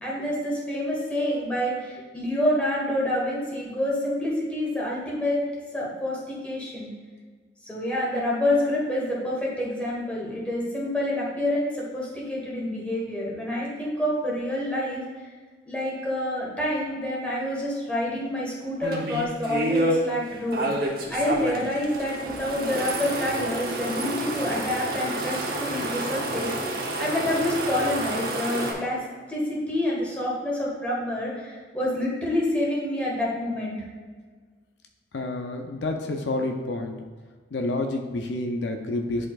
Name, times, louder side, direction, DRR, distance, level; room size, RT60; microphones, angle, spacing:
voice 1, 0.0-5.4 5.7-6.9 7.7-15.0 15.7-20.7 21.1-29.0 29.3-33.8, left 1 dB, 10° left, -5 dB, 1.5 m, -27 dB
sound 1, 18.8-20.0 20.5-28.7, right 1 dB, 55° right, 1.0 m, -29 dB
voice 2, 35.1-37.0 37.5-39.3, left 2 dB, 80° left, 3 dB, 0.6 m, -29 dB
10.0 x 4.2 x 2.4 m, 1.5 s
head